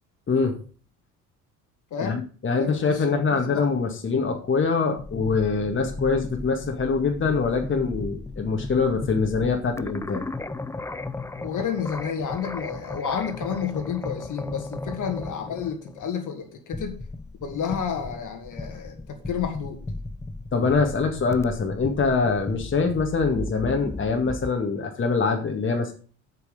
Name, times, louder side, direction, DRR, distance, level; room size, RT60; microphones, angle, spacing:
voice 1, 2.0-10.2 20.5-25.9, left 4 dB, 25° left, 3 dB, 2.1 m, -24 dB
voice 2, 2.5-3.0 3.3-3.6 11.4-17.0 17.4-19.8, left 7 dB, 45° left, 5 dB, 2.2 m, -30 dB
sound 1, 5.0-24.5, left 2 dB, 5° left, 0.6 m, -36 dB
8.4 x 8.2 x 5.3 m, 0.40 s
figure-of-eight pair, 55°, 44 cm